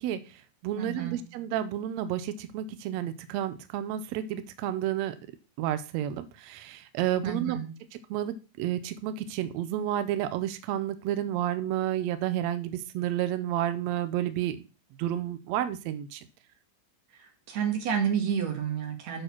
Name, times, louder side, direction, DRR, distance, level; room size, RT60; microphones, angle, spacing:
voice 1, 0.0-5.1 5.6-7.6 8.1-14.6 15.0-16.3, right 11 dB, 85° right, 12 dB, 1.5 m, -31 dB
voice 2, 0.8-1.2 7.2-7.7 17.2-19.2, right 8 dB, 60° right, 3 dB, 2.7 m, -30 dB
6.7 x 6.5 x 5.9 m, 0.33 s
omnidirectional pair, 3.9 m